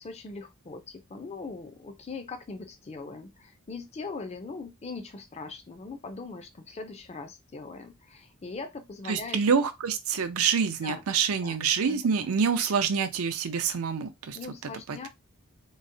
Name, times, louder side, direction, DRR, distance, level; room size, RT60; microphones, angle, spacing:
voice 1, 0.0-9.4 10.8-11.0 11.4-11.6 11.8-12.1 14.3-15.1, left 4 dB, 30° left, 0.4 m, -40 dB
voice 2, 9.1-14.4 14.9-15.1, right 6 dB, 75° right, 0.5 m, -26 dB
3.8 x 2.1 x 2.6 m
head